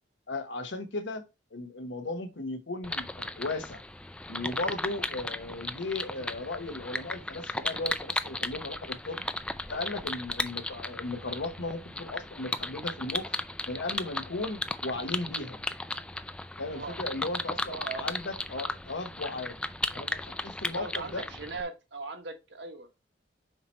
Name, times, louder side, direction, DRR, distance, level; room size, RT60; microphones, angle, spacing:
voice 1, 0.3-1.2 1.5-3.8 4.3-9.2 9.7-13.3 13.7-15.6 16.6-19.6 19.9-21.3, left 2 dB, 75° left, 1.0 m, -36 dB
sound 1, 2.8-21.6, left 2 dB, 5° left, 0.3 m, -36 dB
voice 2, 17.7-18.1 20.8-22.9, right 3 dB, 70° right, 1.3 m, -39 dB
5.8 x 4.3 x 4.3 m
head